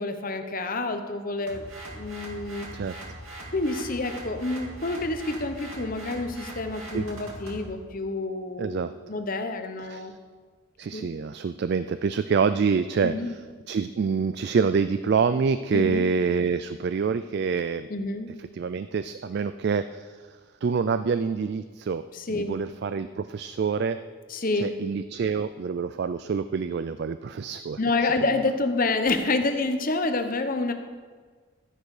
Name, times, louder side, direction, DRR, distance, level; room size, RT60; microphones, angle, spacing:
voice 1, 0.0-1.7 1.9-2.7 3.5-10.1 10.9-11.1 13.0-13.3 15.7-16.1 17.9-18.4 22.1-22.6 24.3-24.7 27.8-30.7, left 2 dB, 40° left, 7 dB, 0.9 m, -28 dB
sound 1, 1.5-7.7, right 1 dB, 70° right, 2.5 m, -41 dB
voice 2, 8.6-8.9 9.8-10.1 10.8-13.4 13.7-17.9 18.5-20.3 20.6-22.0 22.3-24.0 24.5-27.8, right 5 dB, 50° right, 12 dB, 0.3 m, -26 dB
13.0 x 10.5 x 4.9 m, 1.5 s
head